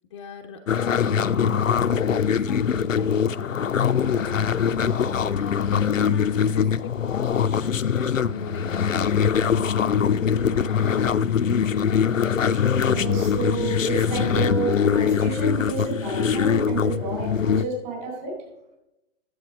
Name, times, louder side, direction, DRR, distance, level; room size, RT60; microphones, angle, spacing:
voice 1, 0.1-5.0 5.4-11.6, left 5 dB, 25° left, 4 dB, 0.5 m, -40 dB
sound 1, 0.7-17.6, left 7 dB, 85° left, 0.5 m, -22 dB
voice 2, 12.5-18.3, right 4 dB, 40° right, 0 dB, 4.4 m, -30 dB
9.9 x 7.7 x 5.1 m, 0.91 s
figure-of-eight pair, 120°, 38 cm